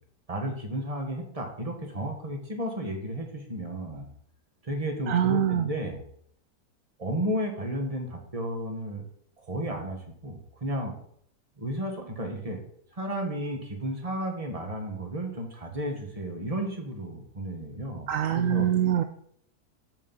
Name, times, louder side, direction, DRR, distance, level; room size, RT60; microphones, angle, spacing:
voice 1, 0.3-4.1 4.6-6.0 7.0-9.0 9.4-10.9 11.6-12.6 12.9-18.7, right 1 dB, 20° right, 2 dB, 1.6 m, -33 dB
voice 2, 5.1-5.7 18.1-19.0, right 10 dB, 70° right, 8 dB, 0.8 m, -24 dB
6.6 x 5.9 x 5.4 m, 0.65 s
omnidirectional pair, 1.8 m